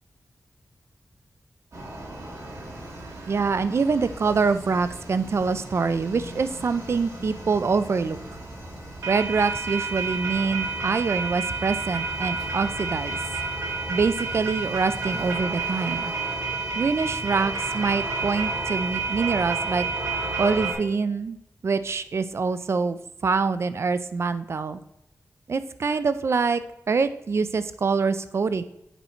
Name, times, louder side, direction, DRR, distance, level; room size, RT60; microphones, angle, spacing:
sound 1, 1.7-20.7, right 3 dB, 70° right, 1.7 m, -31 dB
voice 1, 3.3-8.2 9.1-13.2 13.9-16.1 16.8-19.8 20.4-21.4 21.6-24.8 25.5-26.6 26.9-28.6, right 4 dB, 50° right, 12 dB, 0.4 m, -25 dB
8.1 x 4.3 x 4.4 m, 0.82 s
wide cardioid pair, 130°, 6 cm